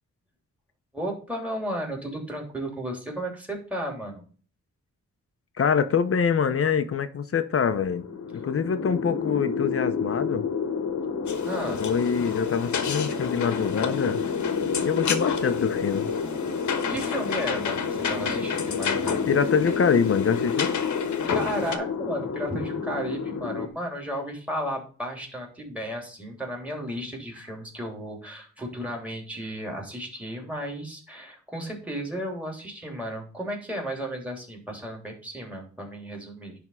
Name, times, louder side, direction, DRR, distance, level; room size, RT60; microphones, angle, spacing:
voice 1, 0.9-4.2 11.4-11.8 16.9-19.3 21.3-36.5, equal, 5° right, 3.1 m, -34 dB
voice 2, 5.6-8.0 8.3-10.5 11.8-14.2 14.8-16.1 19.3-20.7, left 6 dB, 50° left, 0.8 m, -25 dB
sound 1, 7.7-23.7, left 5 dB, 65° left, 1.2 m, -30 dB
sound 2, 11.3-21.8, left 6 dB, 85° left, 1.3 m, -31 dB
10.5 x 3.6 x 5.6 m
wide cardioid pair, 115°, 29 cm